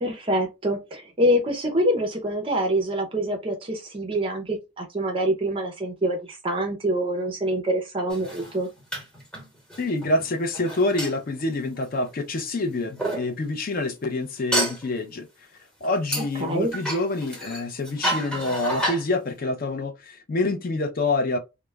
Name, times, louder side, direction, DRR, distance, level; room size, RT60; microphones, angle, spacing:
voice 1, 0.0-8.7 16.4-16.7, equal, 25° right, 0.4 m, -25 dB
sound 1, 8.1-12.4 13.0-13.2 14.5-14.8 16.1-19.0, right 1 dB, 5° left, 0.9 m, -30 dB
voice 2, 9.8-15.3 15.8-21.4, left 2 dB, 40° left, 0.4 m, -26 dB
2.2 x 2.0 x 3.2 m
head